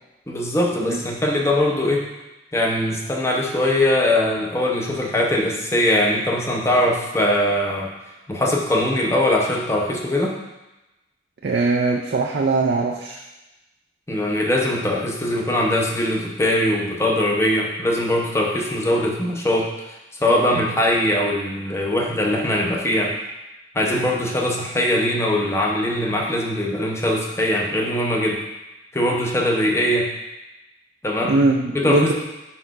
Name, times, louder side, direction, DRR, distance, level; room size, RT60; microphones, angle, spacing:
voice 1, 0.3-2.0 2.5-7.9 8.3-10.4 14.1-19.7 20.2-23.2 23.7-28.4 28.9-30.1 31.0-31.4 31.7-32.1, left 1 dB, 15° left, -1 dB, 0.7 m, -21 dB
voice 2, 11.4-13.2 31.2-32.1, right 3 dB, 55° right, 1 dB, 0.4 m, -20 dB
4.9 x 4.5 x 4.6 m, 1.0 s
head